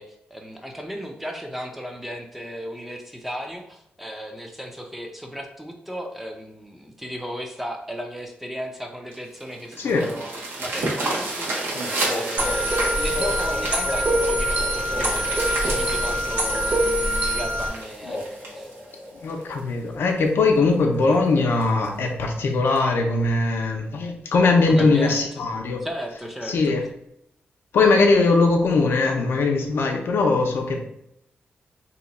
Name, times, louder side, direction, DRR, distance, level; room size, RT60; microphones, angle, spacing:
voice 1, 0.0-10.3 10.6-11.7 12.0-18.2 18.5-18.7 24.7-25.2 25.8-26.5, equal, 5° right, 3 dB, 0.4 m, -35 dB
sound 1, 9.1-19.6 20.2-20.3 20.7-20.8 21.1-21.2 21.6-21.9 22.8-22.9, right 2 dB, 80° right, 1.0 m, -31 dB
voice 2, 9.8-10.1 18.1-18.2 19.2-25.8 26.4-26.8 27.7-30.8, left 3 dB, 80° left, 3 dB, 0.5 m, -20 dB
sound 2, 11.7-19.4, left 1 dB, 50° left, 0.8 m, -35 dB
sound 3, 12.4-17.7, equal, 40° right, 0.7 m, -24 dB
2.8 x 2.2 x 4.0 m, 0.79 s
wide cardioid pair, 140°, 4 cm